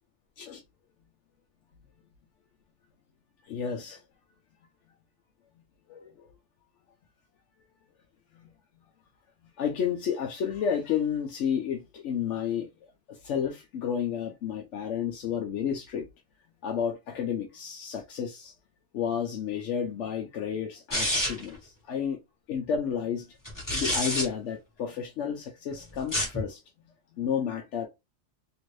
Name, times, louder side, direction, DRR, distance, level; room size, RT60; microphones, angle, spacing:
voice 1, 3.5-4.0 5.9-6.3 8.3-8.4 9.6-12.7 13.1-16.0 16.6-18.5 18.9-22.2 22.5-23.4 23.7-26.6 27.2-27.9, left 8 dB, 80° left, 0.9 m, -31 dB
sound 1, 20.9-21.5 23.4-24.3 26.0-26.4, left 1 dB, 15° left, 1.3 m, -28 dB
2.9 x 2.6 x 3.1 m
omnidirectional pair, 1.2 m